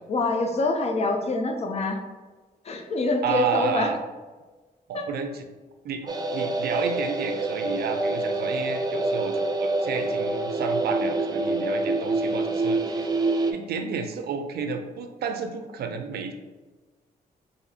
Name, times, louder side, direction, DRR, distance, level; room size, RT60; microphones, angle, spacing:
voice 1, 0.1-2.0 2.6-3.9 4.9-5.0, left 2 dB, 40° left, 4 dB, 0.5 m, -25 dB
voice 2, 3.2-4.0 4.9-5.5 5.8-13.1 13.5-16.3, right 6 dB, 85° right, 6 dB, 0.5 m, -31 dB
sound 1, 6.1-13.5, right 2 dB, 25° right, 0.3 m, -26 dB
4.0 x 2.7 x 2.7 m, 1.3 s
wide cardioid pair, 125°, 16 cm